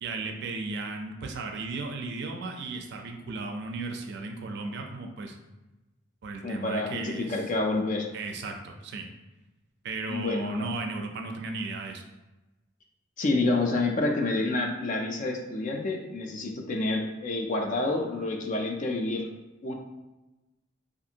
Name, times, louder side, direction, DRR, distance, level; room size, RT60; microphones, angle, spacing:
voice 1, 0.0-5.4 6.2-7.4 8.1-9.0 9.8-12.0, right 3 dB, 60° right, 3 dB, 0.4 m, -35 dB
voice 2, 6.4-8.1 10.1-10.7 13.2-19.3 19.6-19.7, left 2 dB, 40° left, 2 dB, 0.4 m, -28 dB
2.5 x 2.5 x 2.7 m, 1.1 s
head